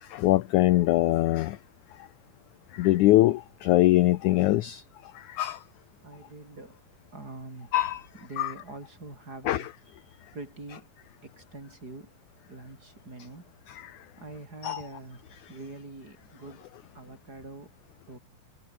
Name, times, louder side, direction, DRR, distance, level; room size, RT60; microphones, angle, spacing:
voice 1, 0.0-1.6 2.7-4.8 5.2-5.6 7.7-8.0 8.4-8.5 9.4-9.7 13.7-14.0 14.6-14.8 15.3-15.4, left 16 dB, 80° left, 1.7 m, -23 dB
voice 2, 6.0-6.8 7.1-7.7 8.2-9.7 10.3-10.9 11.2-12.1 12.5-13.5 14.2-16.7 16.9-17.7 18.1-18.2, right 2 dB, 25° right, 5.6 m, -44 dB
omnidirectional pair, 4.3 m